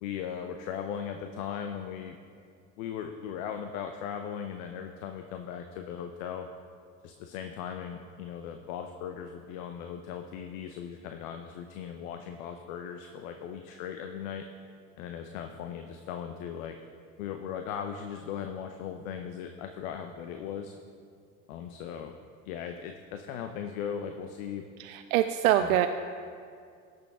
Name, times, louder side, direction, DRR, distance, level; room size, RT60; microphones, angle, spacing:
voice 1, 0.0-2.2 2.8-6.5 7.0-14.5 15.0-16.8 17.2-20.7 21.5-22.1 22.4-24.7 25.6-25.8, left 8 dB, 70° left, 6 dB, 0.8 m, -38 dB
voice 2, 24.8-25.9, right 12 dB, 75° right, 8 dB, 0.5 m, -24 dB
17.0 x 6.7 x 3.6 m, 2.2 s
hypercardioid pair, 75°, 43 cm